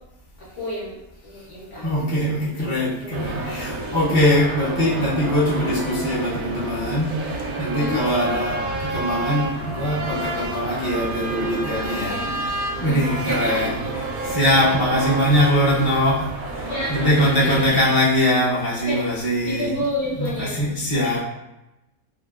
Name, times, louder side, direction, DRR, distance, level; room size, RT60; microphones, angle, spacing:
voice 1, 0.4-1.9 3.0-3.2 7.7-8.0 12.1-12.3 12.8-13.0 13.2-13.6 16.7-17.8 18.8-19.0 19.5-20.6, left 1 dB, 60° left, -5 dB, 0.8 m, -30 dB
voice 2, 1.8-12.2 12.8-19.7 20.1-21.2, equal, 25° left, -7 dB, 0.5 m, -22 dB
sound 1, 3.1-17.7, right 2 dB, 75° right, 1.0 m, -29 dB
2.8 x 2.4 x 2.3 m, 0.95 s
omnidirectional pair, 1.5 m